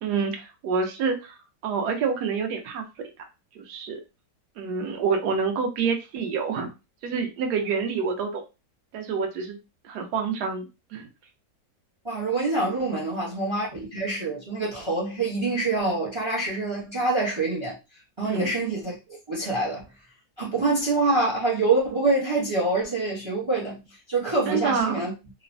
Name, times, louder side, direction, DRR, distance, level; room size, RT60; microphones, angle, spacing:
voice 1, 0.0-1.4 1.6-3.1 3.5-4.0 4.6-6.7 7.0-8.4 8.9-9.6 9.8-11.1 18.2-18.5 24.5-25.0, right 5 dB, 75° right, 1.1 m, -27 dB
voice 2, 12.0-17.8 18.2-19.0 19.3-19.9 20.4-25.1, right 2 dB, 40° right, 0.4 m, -25 dB
3.1 x 2.0 x 2.5 m
omnidirectional pair, 1.9 m